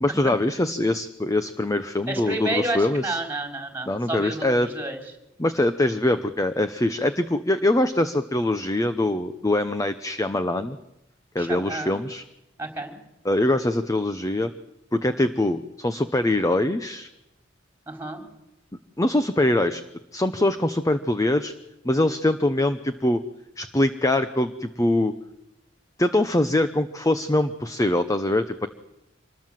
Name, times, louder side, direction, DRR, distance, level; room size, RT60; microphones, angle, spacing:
voice 1, 0.0-3.2 3.9-4.7 5.4-10.8 11.3-12.2 13.2-14.5 14.9-17.1 19.0-19.8 20.1-21.5 21.8-23.2 23.6-25.1 26.0-28.7, left 1 dB, 15° left, 10 dB, 0.8 m, -23 dB
voice 2, 2.1-5.0 11.4-12.0 12.6-12.9 17.9-18.2, right 2 dB, 10° right, 4 dB, 4.2 m, -30 dB
26.0 x 20.5 x 7.6 m, 0.92 s
head